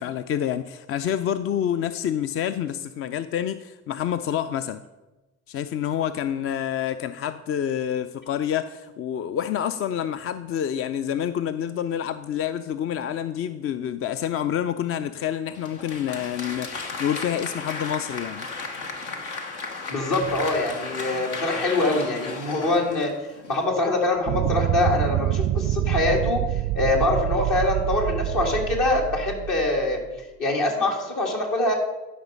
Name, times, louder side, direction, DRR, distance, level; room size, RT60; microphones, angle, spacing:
voice 1, 0.0-4.8 5.5-18.5, left 9 dB, 40° left, 0.4 m, -28 dB
Applause, 15.5-23.6, left 3 dB, 75° left, 1.1 m, -34 dB
voice 2, 19.9-23.1 23.5-26.4 26.7-30.0 30.4-31.7, left 2 dB, 60° left, 2.2 m, -24 dB
sound 1, 24.3-30.0, right 14 dB, 50° right, 0.4 m, -26 dB
12.0 x 5.2 x 5.3 m
hypercardioid pair, 50°, 36 cm